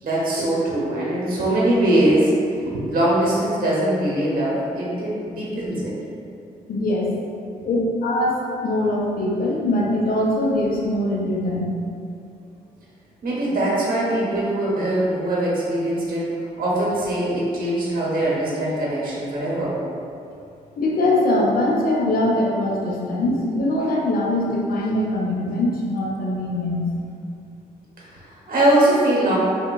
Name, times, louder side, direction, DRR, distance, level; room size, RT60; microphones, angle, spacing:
voice 1, 0.0-2.3 2.7-6.0 13.2-19.8 28.0-29.4, right 1 dB, 55° right, -5 dB, 0.9 m, -22 dB
voice 2, 6.7-7.1 7.6-11.7 20.8-26.8, left 1 dB, 55° left, -3 dB, 0.6 m, -22 dB
2.9 x 2.1 x 2.2 m, 2.5 s
supercardioid pair, 50°, 18 cm